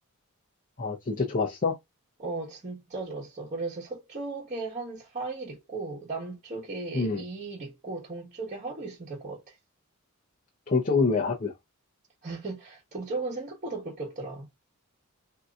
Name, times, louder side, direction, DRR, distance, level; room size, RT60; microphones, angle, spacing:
voice 1, 0.8-1.8 6.9-7.2 10.7-11.5, left 4 dB, 35° left, 0.6 m, -26 dB
voice 2, 2.2-9.6 12.2-14.5, right 3 dB, 35° right, 1.2 m, -36 dB
3.7 x 2.7 x 2.3 m
head